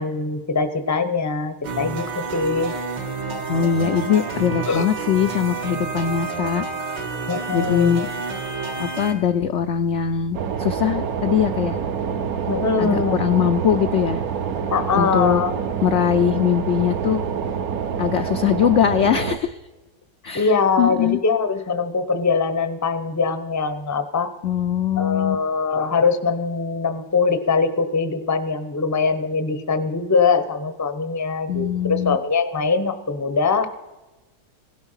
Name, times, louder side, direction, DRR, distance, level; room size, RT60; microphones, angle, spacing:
voice 1, 0.0-2.7 4.7-4.8 7.3-8.1 12.5-13.2 14.7-15.5 20.3-24.3 25.0-33.7, left 4 dB, 15° left, 10 dB, 0.6 m, -22 dB
sound 1, 1.6-9.1, right 4 dB, 80° right, 2.5 m, -29 dB
voice 2, 3.5-6.7 7.5-8.1 8.8-11.8 12.8-14.2 14.9-15.4 15.8-17.2 18.0-19.6 20.2-21.2 24.4-25.4 31.5-32.2, left 8 dB, 70° left, 8 dB, 0.7 m, -21 dB
sound 2, 10.3-19.4, right 7 dB, 60° right, 1.3 m, -26 dB
17.0 x 12.0 x 5.6 m, 1.1 s
omnidirectional pair, 1.8 m